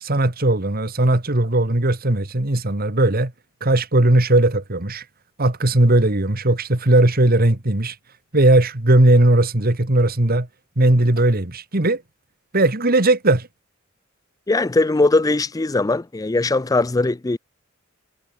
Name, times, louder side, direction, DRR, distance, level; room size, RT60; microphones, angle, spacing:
voice 1, 0.0-3.3 3.6-5.0 5.4-7.9 8.3-10.5 10.8-12.0 12.5-13.5, right 1 dB, 45° right, 2.0 m, -18 dB
voice 2, 14.5-17.4, left 2 dB, 15° left, 0.4 m, -20 dB
head